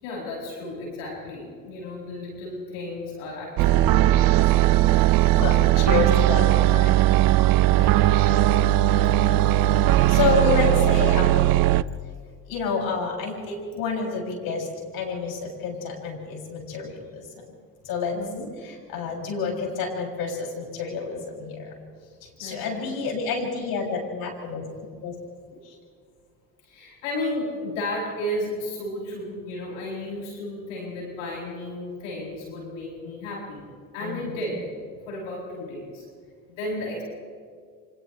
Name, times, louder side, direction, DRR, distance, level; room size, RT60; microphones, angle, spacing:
voice 1, 0.0-5.0 7.7-8.4 10.2-10.4 18.1-18.5 22.4-22.8 26.6-33.6 33.9-34.7 35.1-36.1 36.6-37.0, left 1 dB, 85° left, -3 dB, 7.9 m, -33 dB
sound 1, 3.6-11.8, right 15 dB, 60° right, 0.7 m, -18 dB
voice 2, 5.4-7.1 9.9-11.6 12.5-17.3 17.8-18.2 18.6-21.8 22.2-24.7 25.0-25.1 25.6-25.8 34.0-34.5, left 5 dB, 65° left, -1 dB, 7.1 m, -29 dB
29.5 x 26.5 x 3.3 m, 2.1 s
supercardioid pair, 75°, 38 cm